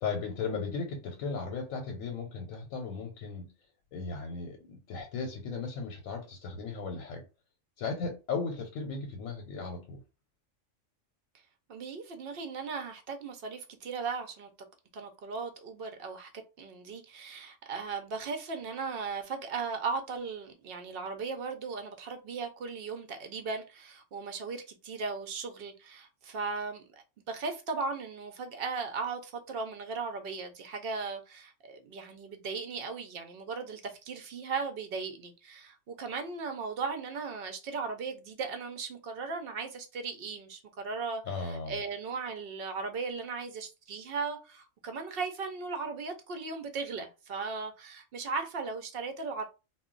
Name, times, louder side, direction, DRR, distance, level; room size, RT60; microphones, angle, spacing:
voice 1, 0.0-3.5 3.9-7.2 7.8-10.0 41.3-41.8, left 4 dB, 85° left, 1.0 m, -36 dB
voice 2, 11.7-14.5 14.9-16.3 16.6-49.4, right 4 dB, 60° right, 0.6 m, -37 dB
2.2 x 2.1 x 3.7 m
omnidirectional pair, 1.4 m